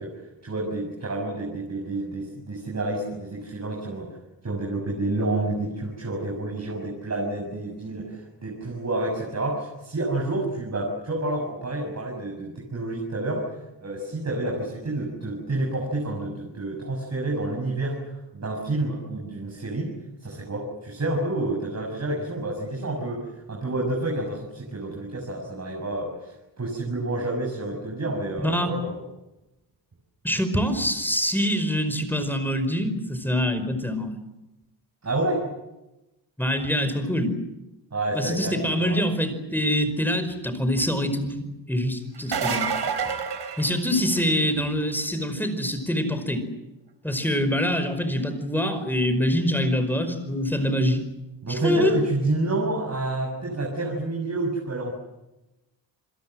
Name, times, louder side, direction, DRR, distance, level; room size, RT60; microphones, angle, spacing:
voice 1, 0.0-4.1 4.4-13.5 13.8-19.9 20.2-29.0 35.0-35.4 37.9-39.1 51.4-55.0, right 2 dB, 35° right, -1 dB, 6.5 m, -29 dB
voice 2, 28.4-28.7 30.2-34.1 36.4-37.3 38.1-42.7 43.6-46.4 47.0-51.0 51.5-51.9, equal, 5° left, 9 dB, 5.1 m, -25 dB
sound 1, 42.1-44.4 49.9-50.0 51.8-51.9, right 6 dB, 65° right, 4.2 m, -28 dB
28.0 x 22.0 x 7.8 m, 0.97 s
cardioid pair, 105°, 44 cm